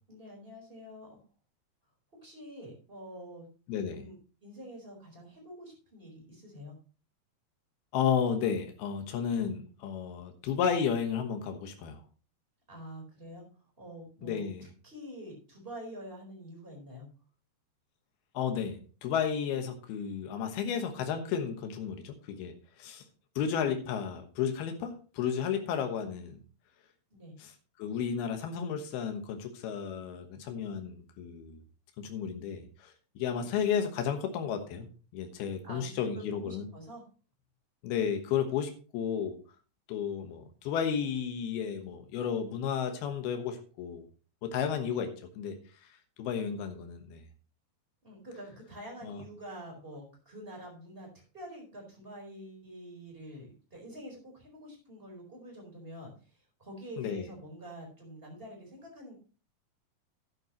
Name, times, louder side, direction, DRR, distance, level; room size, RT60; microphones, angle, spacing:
voice 1, 0.1-1.2 2.2-3.5 3.8-4.1 4.4-6.7 12.7-13.4 13.8-14.4 14.8-17.0 27.1-27.3 35.6-37.0 48.0-51.1 51.3-56.1 56.6-59.1, equal, 15° right, 0 dB, 4.4 m, -46 dB
voice 2, 3.7-4.0 7.9-12.0 14.2-14.6 18.3-23.0 23.4-26.4 27.4-27.5 27.8-31.6 32.0-34.9 35.1-36.7 37.8-39.4 39.9-44.1 44.4-45.6 46.2-47.2 49.0-49.2 57.0-57.2, left 7 dB, 85° left, 6 dB, 3.2 m, -33 dB
11.5 x 11.0 x 3.0 m, 0.37 s
omnidirectional pair, 4.3 m